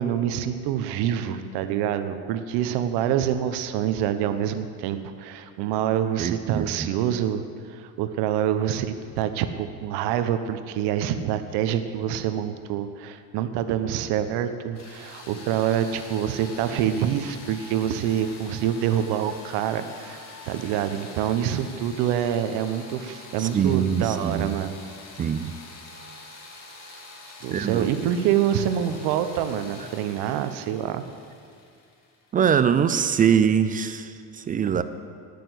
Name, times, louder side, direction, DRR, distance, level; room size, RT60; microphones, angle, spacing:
voice 1, 0.0-7.4 7.7-24.8 27.4-31.0, right 10 dB, 70° right, 10 dB, 1.1 m, -26 dB
voice 2, 6.2-6.9 23.4-24.6 25.2-25.6 27.5-27.9 32.3-34.8, right 7 dB, 20° right, 11 dB, 0.3 m, -23 dB
sound 1, 14.7-32.5, left 3 dB, 40° left, 2.7 m, -45 dB
19.0 x 6.9 x 7.9 m, 2.4 s
cardioid pair, 155°, 41 cm